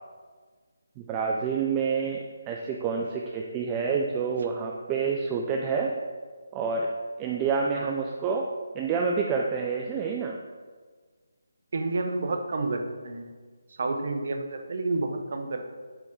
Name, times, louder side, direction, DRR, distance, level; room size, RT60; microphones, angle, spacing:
voice 1, 1.0-5.9 6.5-6.9 7.2-8.5 8.7-10.4, right 5 dB, 20° right, 0 dB, 0.4 m, -28 dB
voice 2, 11.7-13.3 13.8-15.7, right 2 dB, 55° right, 5 dB, 0.8 m, -30 dB
6.8 x 3.6 x 4.6 m, 1.5 s
figure-of-eight pair, 160°, 0 cm